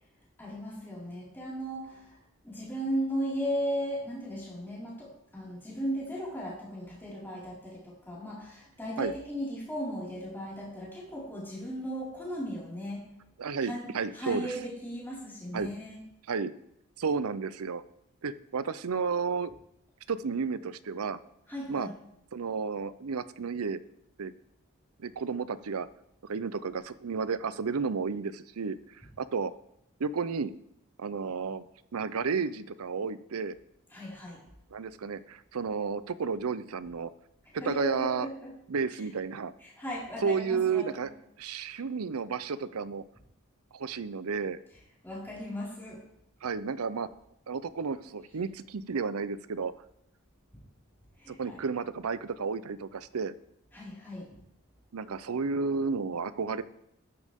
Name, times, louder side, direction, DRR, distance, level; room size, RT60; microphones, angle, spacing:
voice 1, 0.4-2.2 2.4-13.0 13.6-13.9 14.1-16.0 21.5-21.9 33.9-34.4 37.6-38.5 39.6-41.1 45.0-46.0 50.5-50.6 51.2-51.6 53.7-54.3, equal, 10° left, -7 dB, 4.8 m, -36 dB
voice 2, 13.4-14.5 15.5-15.7 16.3-16.5 17.0-17.8 18.2-19.5 20.1-21.2 21.7-21.9 22.3-23.8 24.2-24.3 25.0-25.9 26.3-29.5 30.0-30.5 31.0-31.6 31.9-33.6 34.7-37.1 37.6-38.3 38.7-39.5 40.2-41.1 41.4-43.0 43.7-44.6 46.4-47.1 47.5-49.7 51.3-53.3 54.9-56.6, right 5 dB, 80° right, 16 dB, 0.6 m, -32 dB
13.0 x 10.5 x 3.6 m, 0.79 s
head